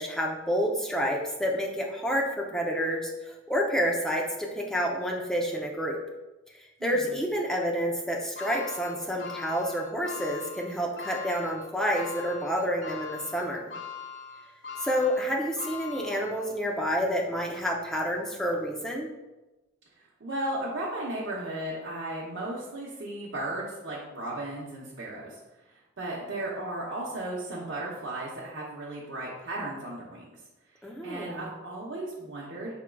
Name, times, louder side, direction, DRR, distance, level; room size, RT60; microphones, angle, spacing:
voice 1, 0.0-6.0 6.5-13.7 14.8-19.1 30.8-31.5, equal, 5° left, -1 dB, 0.5 m, -29 dB
voice 2, 6.8-7.1 20.2-25.4 25.7-30.3 31.0-32.7, right 1 dB, 75° right, -6 dB, 0.8 m, -35 dB
sound 1, 8.4-16.7 17.2-17.3 18.5-18.6, left 6 dB, 65° left, 0.5 m, -41 dB
5.8 x 3.6 x 2.3 m, 1.1 s
head